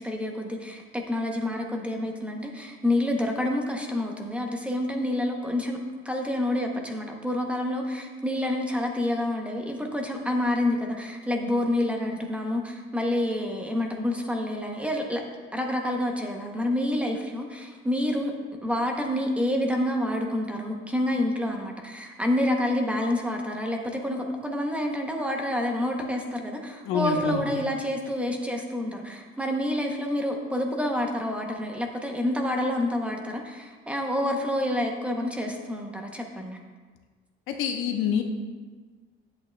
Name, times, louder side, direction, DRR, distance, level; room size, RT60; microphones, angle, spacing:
voice 1, 0.0-5.8 6.0-15.2 15.5-18.3 18.6-36.6, left 1 dB, 5° right, 2 dB, 0.7 m, -28 dB
voice 2, 26.8-27.4 37.5-38.2, left 8 dB, 80° left, 4 dB, 0.9 m, -26 dB
10.5 x 8.1 x 2.2 m, 1.4 s
cardioid pair, 160°, 21 cm